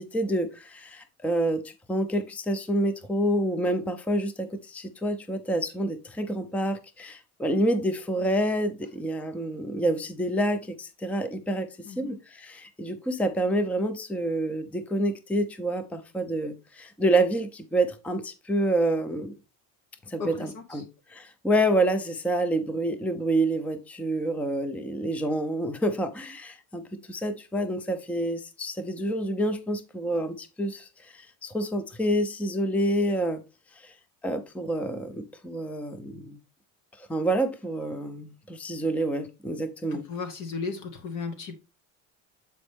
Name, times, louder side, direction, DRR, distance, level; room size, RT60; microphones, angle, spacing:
voice 1, 0.0-11.7 12.0-19.3 20.1-20.8 21.1-33.4 33.8-33.9 34.2-36.4 37.0-40.0, right 1 dB, 5° left, 0.5 m, -28 dB
voice 2, 11.8-12.2 20.2-20.8 39.9-41.5, left 5 dB, 55° left, 1.1 m, -35 dB
8.1 x 4.3 x 3.3 m
supercardioid pair, 105°, 36 cm